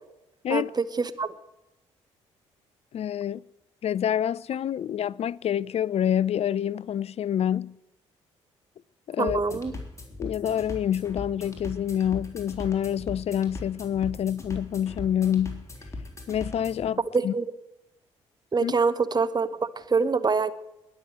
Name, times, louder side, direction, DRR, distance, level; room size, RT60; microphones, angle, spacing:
voice 1, 0.5-1.3 9.2-9.7 17.1-17.4 18.5-19.5 19.8-20.5, right 4 dB, 30° right, 1.0 m, -25 dB
voice 2, 2.9-3.4 3.8-7.8 9.1-9.6 10.2-15.6 16.3-17.3 18.6-18.7, left 10 dB, 45° left, 0.4 m, -27 dB
sound 1, 9.3-16.9, left 2 dB, 20° left, 3.7 m, -40 dB
20.5 x 6.9 x 7.9 m
figure-of-eight pair, 45°, 15 cm